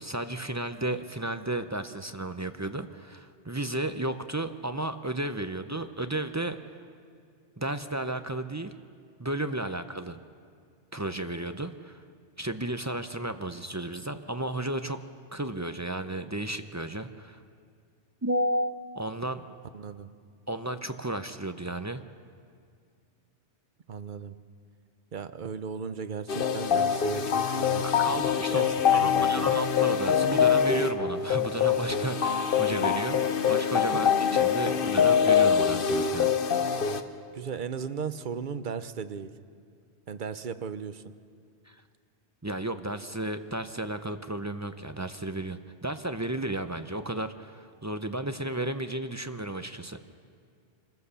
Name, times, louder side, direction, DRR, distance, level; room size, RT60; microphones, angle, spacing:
voice 1, 0.0-6.6 7.6-8.7 9.2-10.2 10.9-12.0 12.4-15.0 15.3-17.4 18.2-19.4 20.5-22.0 28.0-36.3 41.7-41.8 42.4-50.0, right 1 dB, 20° right, 9 dB, 0.5 m, -33 dB
voice 2, 19.7-20.1 23.9-24.4 25.1-27.8 28.5-29.6 33.9-34.0 37.3-39.3 40.1-41.0, right 6 dB, 50° right, 11 dB, 0.8 m, -36 dB
sound 1, 26.3-37.0, left 7 dB, 55° left, 1.0 m, -24 dB
26.5 x 15.0 x 6.9 m, 2.3 s
omnidirectional pair, 1.2 m